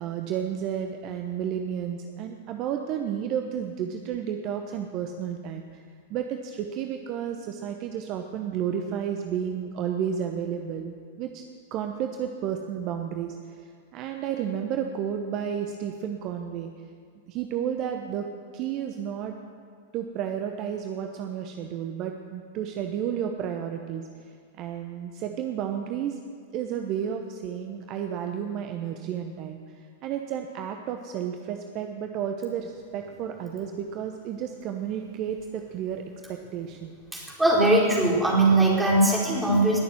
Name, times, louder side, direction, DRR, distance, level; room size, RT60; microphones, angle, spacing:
voice 1, 0.0-5.8 6.1-11.4 11.7-16.7 17.3-18.3 18.5-19.3 19.9-24.1 24.6-26.2 26.5-29.7 30.0-36.0 36.3-36.9, right 8 dB, 40° right, 5 dB, 1.0 m, -32 dB
voice 2, 37.1-39.8, right 2 dB, 5° right, -5 dB, 4.4 m, -20 dB
20.5 x 7.1 x 7.8 m, 2.1 s
figure-of-eight pair, 95°, 0 cm